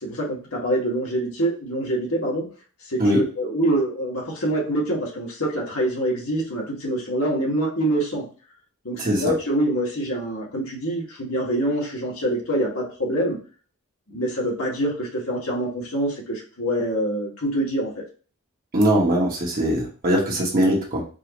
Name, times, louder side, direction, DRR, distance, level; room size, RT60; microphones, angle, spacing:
voice 1, 0.0-2.5 2.9-8.2 8.8-13.4 14.1-17.9, right 1 dB, 70° left, -2 dB, 1.7 m, -25 dB
voice 2, 9.0-9.3 18.7-21.0, equal, 40° right, -3 dB, 1.2 m, -21 dB
4.7 x 2.7 x 3.0 m, 0.37 s
head